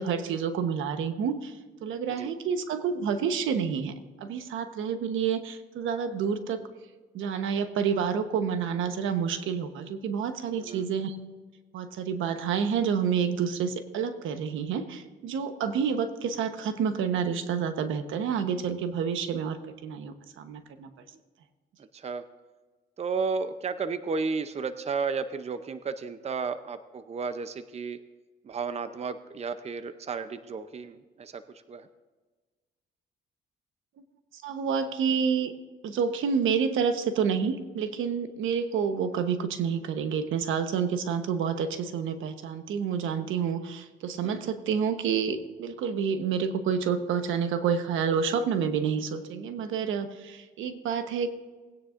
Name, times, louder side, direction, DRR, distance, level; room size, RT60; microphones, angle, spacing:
voice 1, 0.0-6.6 7.1-11.2 11.7-20.9 34.3-35.5 35.8-51.3, right 6 dB, 85° right, 8 dB, 1.1 m, -29 dB
voice 2, 21.9-22.2 23.0-28.0 28.4-31.4 31.7-31.9 44.2-44.5, right 5 dB, 35° right, 11 dB, 0.6 m, -33 dB
19.5 x 9.6 x 2.5 m, 1.3 s
cardioid pair, 90°, 20 cm